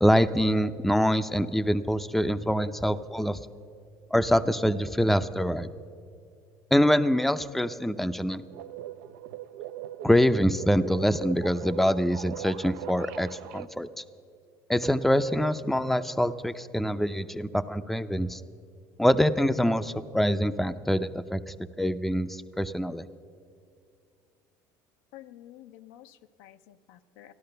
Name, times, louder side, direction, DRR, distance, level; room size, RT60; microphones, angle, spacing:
voice 1, 0.0-3.4 4.1-5.7 6.7-8.4 10.0-14.0 14.7-18.4 19.0-23.0, equal, ahead, 11 dB, 0.5 m, -25 dB
sound 1, 8.5-13.7, right 12 dB, 80° right, 0.5 m, -41 dB
voice 2, 25.1-27.3, left 13 dB, 75° left, 9 dB, 0.6 m, -50 dB
14.5 x 11.5 x 6.7 m, 2.4 s
supercardioid pair, 85°, 10 cm